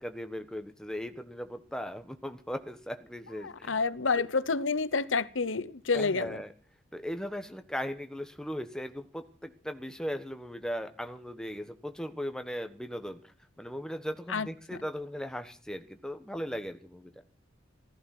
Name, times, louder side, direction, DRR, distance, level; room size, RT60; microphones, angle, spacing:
voice 1, 0.0-3.8 5.9-6.5 6.9-17.2, equal, 5° left, 1.4 m, -38 dB
voice 2, 3.4-6.4 14.3-14.5, left 4 dB, 85° left, 0.9 m, -29 dB
15.5 x 14.5 x 6.1 m
head